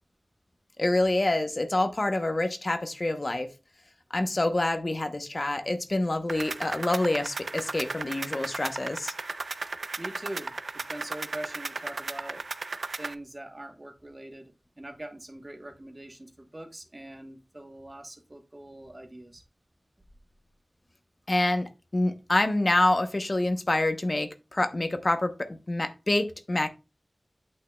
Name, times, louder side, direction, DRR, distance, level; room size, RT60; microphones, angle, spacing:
voice 1, 0.8-3.5 4.1-9.1 21.3-26.7, left 2 dB, 40° left, 0.8 m, -27 dB
sound 1, 6.3-13.1, right 3 dB, 75° right, 0.4 m, -36 dB
voice 2, 10.0-12.4 13.0-19.4, right 1 dB, 30° right, 1.1 m, -43 dB
8.6 x 6.3 x 2.2 m
wide cardioid pair, 75°, 0 cm